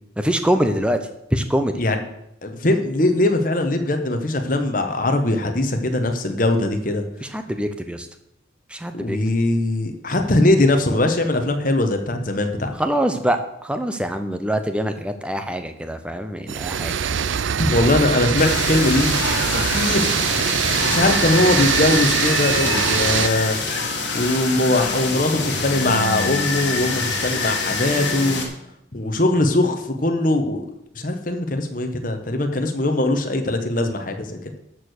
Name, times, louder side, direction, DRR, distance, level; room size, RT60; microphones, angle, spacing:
voice 1, 0.2-1.0 1.3-1.8 7.2-8.1 8.7-9.2 12.8-16.9, equal, 5° right, 8 dB, 0.7 m, -24 dB
voice 2, 2.4-7.0 8.9-12.7 17.6-19.1 19.5-20.1 20.8-23.6 24.1-28.4 28.9-30.6 30.9-34.4, left 2 dB, 45° left, 5 dB, 1.2 m, -21 dB
sound 1, 16.5-23.3, right 8 dB, 80° right, 0.5 m, -23 dB
sound 2, 18.4-28.5, left 3 dB, 65° left, 2.0 m, -25 dB
13.0 x 4.7 x 6.6 m, 0.81 s
head